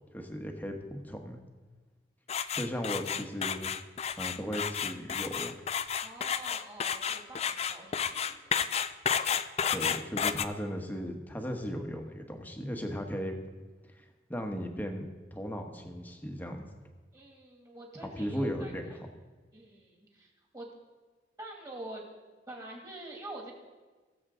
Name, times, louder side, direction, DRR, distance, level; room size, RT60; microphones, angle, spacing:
voice 1, 0.1-1.4 2.5-3.7 4.2-5.6 9.7-13.3 14.0-14.1 14.3-16.7 18.0-18.9, equal, 10° left, 4 dB, 1.1 m, -36 dB
sound 1, 2.3-10.4, left 7 dB, 35° left, 0.4 m, -31 dB
voice 2, 6.0-8.6 17.1-19.0 19.5-20.7 21.4-22.0 22.5-23.5, right 1 dB, 20° right, 0 dB, 2.4 m, -46 dB
21.0 x 7.3 x 3.7 m, 1.3 s
head